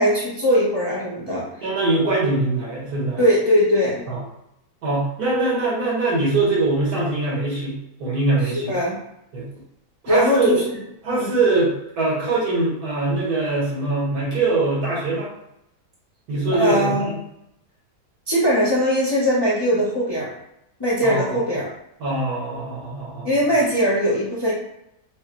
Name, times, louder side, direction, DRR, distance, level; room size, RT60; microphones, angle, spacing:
voice 1, 0.0-1.4 3.2-4.1 8.5-9.0 10.1-10.8 11.1-11.3 16.5-17.1 18.3-20.3 20.8-21.7 23.2-24.5, equal, 25° left, -6 dB, 0.5 m, -20 dB
voice 2, 1.6-3.2 4.1-4.2 4.8-8.7 9.3-9.5 10.0-10.6 11.0-15.3 16.3-17.2 21.0-21.4 22.0-23.3, right 2 dB, 75° right, -4 dB, 1.8 m, -22 dB
5.4 x 2.2 x 2.9 m, 0.82 s
omnidirectional pair, 1.7 m